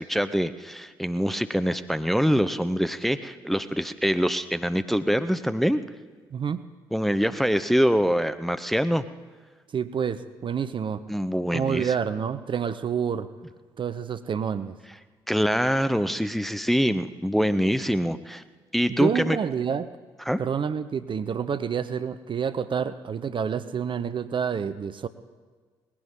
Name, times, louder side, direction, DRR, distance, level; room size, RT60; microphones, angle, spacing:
voice 1, 0.0-5.8 6.9-9.0 11.1-11.8 15.3-18.4 18.7-19.4 20.3-20.4, equal, ahead, 11 dB, 0.7 m, -24 dB
voice 2, 6.3-6.6 9.7-11.0 11.5-13.3 13.8-14.7 18.9-19.9 20.4-25.1, right 7 dB, 40° right, 13 dB, 0.7 m, -28 dB
19.5 x 16.0 x 3.8 m, 1.4 s
figure-of-eight pair, 45°, 13 cm